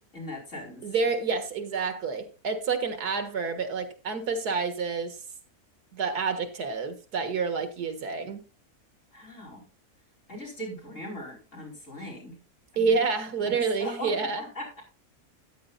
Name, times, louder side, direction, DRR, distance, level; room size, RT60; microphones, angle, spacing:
voice 1, 0.0-0.8 9.1-9.6 10.3-12.4 12.7-14.8, left 1 dB, 50° left, -2 dB, 5.1 m, -40 dB
voice 2, 0.8-5.2 5.9-8.4 12.8-14.5, right 5 dB, 80° right, 8 dB, 2.0 m, -28 dB
13.5 x 9.9 x 2.5 m, 0.32 s
omnidirectional pair, 1.6 m